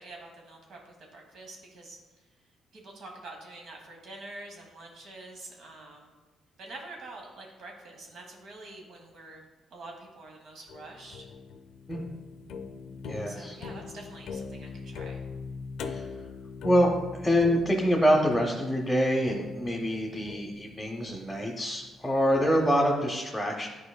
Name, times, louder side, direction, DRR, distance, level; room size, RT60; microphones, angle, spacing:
voice 1, 0.0-2.0 2.7-6.1 6.6-9.4 9.7-11.2 13.3-15.2, right 2 dB, 70° right, 1 dB, 1.1 m, -46 dB
sound 1, 10.7-21.9, left 5 dB, 80° left, 0.5 m, -42 dB
voice 2, 13.0-13.6 15.8-16.1 16.6-23.7, equal, 5° left, -1 dB, 0.8 m, -26 dB
9.6 x 4.8 x 2.3 m, 1.2 s
cardioid pair, 90°, 0 cm